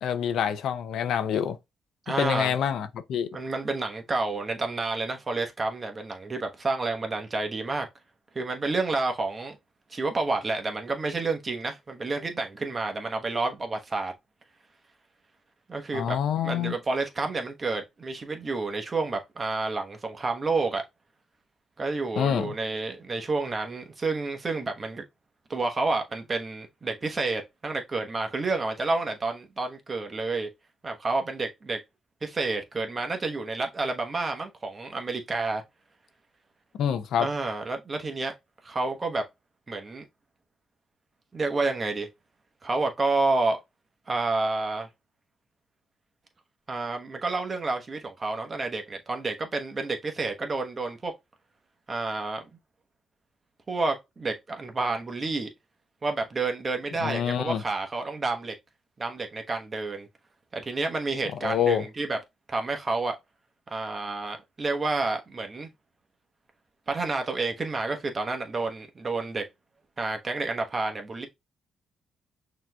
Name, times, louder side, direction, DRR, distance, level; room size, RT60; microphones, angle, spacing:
voice 1, 0.0-1.6 2.2-3.4 15.9-16.7 22.2-22.5 36.8-37.3 57.0-57.6 61.4-61.8, left 9 dB, 75° left, 0.5 m, -26 dB
voice 2, 2.1-2.5 3.3-7.9 8.3-9.6 9.9-14.1 15.7-20.8 21.8-25.0 25.5-30.5 30.8-31.8 32.2-35.6 37.2-38.3 38.6-39.2 39.7-40.0 41.3-42.1 42.6-43.6 44.1-44.9 46.7-51.1 51.9-52.4 53.7-55.5 56.0-58.5 59.0-60.1 60.5-62.2 62.5-63.2 63.7-65.7 66.9-69.5 70.0-71.3, right 3 dB, 30° right, 1.0 m, -29 dB
5.9 x 2.9 x 2.2 m
cardioid pair, 90°, 0 cm